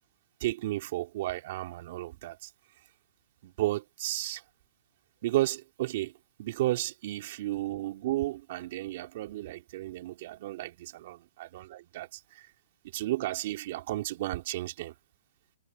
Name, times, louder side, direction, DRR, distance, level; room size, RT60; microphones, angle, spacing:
voice 1, 0.4-2.5 3.4-4.4 5.2-6.1 6.4-12.5 12.9-14.9, right 16 dB, 45° right, 2.8 m, -33 dB
hypercardioid pair, 150°, 0 cm